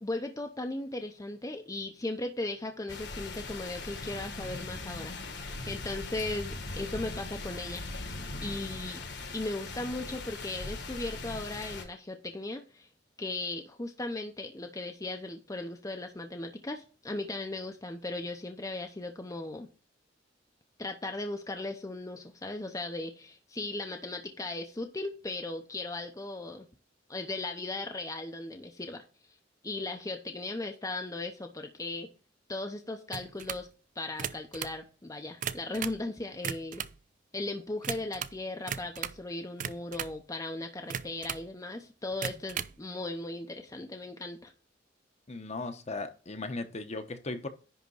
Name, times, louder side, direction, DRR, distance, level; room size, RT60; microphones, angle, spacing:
voice 1, 0.0-7.9 8.4-9.0 9.3-12.9 13.2-19.7 20.8-26.7 27.1-29.4 29.6-32.1 32.5-33.7 34.0-36.8 37.3-44.5, left 2 dB, 20° left, 0.7 m, -37 dB
sound 1, 2.9-11.8, left 3 dB, 65° left, 1.6 m, -40 dB
sound 2, 33.1-33.7 34.1-34.8 35.3-36.0 36.3-37.0 37.8-38.4 38.7-39.2 39.6-40.2 40.9-41.5 42.1-42.8, right 8 dB, 45° right, 0.4 m, -37 dB
voice 2, 45.3-47.5, left 3 dB, 40° left, 1.0 m, -37 dB
10.5 x 3.6 x 5.4 m
head